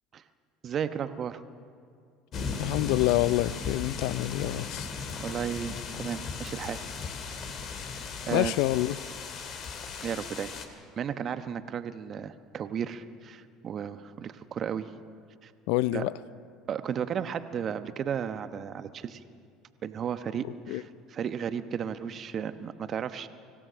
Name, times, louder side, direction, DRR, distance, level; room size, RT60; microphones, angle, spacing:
voice 1, 0.6-1.4 5.2-6.9 7.7-8.5 10.0-14.9 15.4-15.5 15.9-16.1 16.7-19.2 19.8-23.3, right 8 dB, 45° right, 1.1 m, -34 dB
sound 1, 2.3-10.7, left 4 dB, 50° left, 2.3 m, -37 dB
voice 2, 2.6-4.9 8.3-9.0 15.7-16.1 20.7-20.8, left 17 dB, 70° left, 0.4 m, -27 dB
25.5 x 16.5 x 6.3 m
hypercardioid pair, 70°, 0 cm